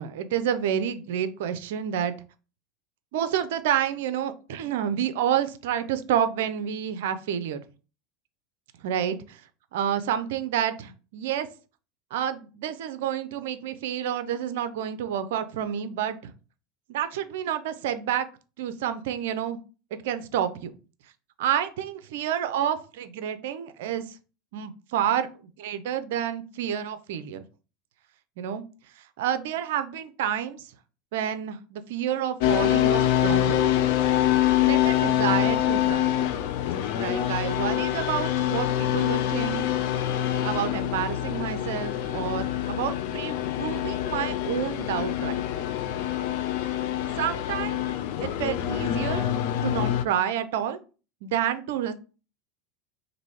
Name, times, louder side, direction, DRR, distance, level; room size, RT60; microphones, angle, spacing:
voice 1, 0.0-2.2 3.1-7.6 8.8-9.4 9.7-11.5 12.1-16.3 16.9-18.3 18.6-19.6 20.0-20.8 21.4-24.2 24.5-25.3 25.6-27.4 28.4-28.7 29.0-30.6 31.1-33.6 34.6-36.1 36.9-39.6 40.4-45.4 47.2-47.9 48.2-49.3 49.6-50.8 51.2-51.9, right 9 dB, 65° right, 10 dB, 0.4 m, -29 dB
sound 1, 32.4-50.0, left 12 dB, 60° left, 0.4 m, -25 dB
3.0 x 2.6 x 4.2 m, 0.34 s
hypercardioid pair, 85°, 0 cm